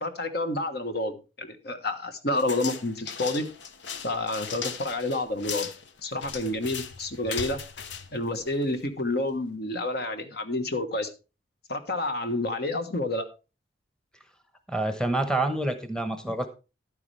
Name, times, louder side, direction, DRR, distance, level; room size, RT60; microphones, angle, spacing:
voice 1, 0.0-3.5 4.0-5.7 6.0-7.6 8.1-11.1 11.7-13.3, left 2 dB, 55° left, 7 dB, 1.3 m, -29 dB
sound 1, 2.4-8.9, left 7 dB, 70° left, 0.9 m, -38 dB
voice 2, 14.7-16.5, right 2 dB, 5° left, 8 dB, 1.0 m, -27 dB
11.5 x 9.6 x 3.3 m, 0.30 s
head